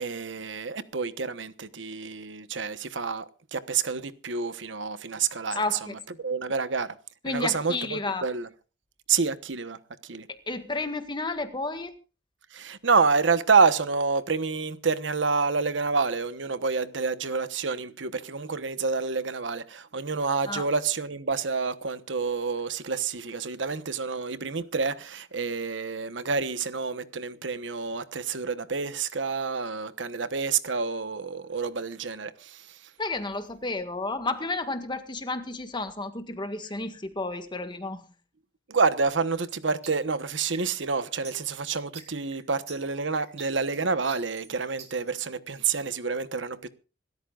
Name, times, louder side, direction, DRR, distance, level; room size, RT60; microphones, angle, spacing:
voice 1, 0.0-3.2 3.5-5.8 6.2-6.9 7.2-8.5 9.1-10.3 12.5-32.9 38.7-46.7, right 4 dB, 85° right, 1.2 m, -28 dB
voice 2, 5.5-5.9 7.2-8.3 10.5-11.9 20.5-20.7 33.0-38.0, left 2 dB, 25° left, 1.8 m, -31 dB
sound 1, 39.5-45.1, right 6 dB, 40° right, 3.8 m, -46 dB
26.0 x 13.5 x 2.5 m
head